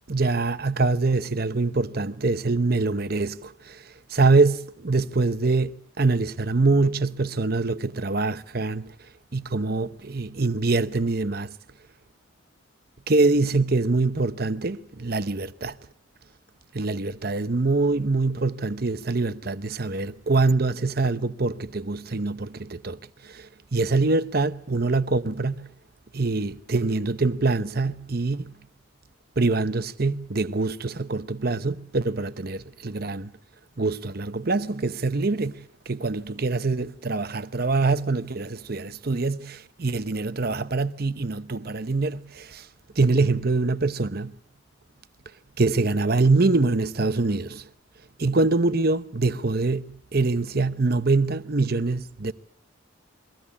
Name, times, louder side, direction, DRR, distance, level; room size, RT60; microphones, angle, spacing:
voice 1, 0.1-3.8 4.1-8.9 9.3-11.5 13.1-15.8 16.7-25.7 26.1-28.5 29.4-33.3 33.8-42.7 43.0-44.3 45.6-47.6 48.2-52.3, right 3 dB, 45° right, 0.8 m, -24 dB
23.0 x 16.0 x 9.8 m
head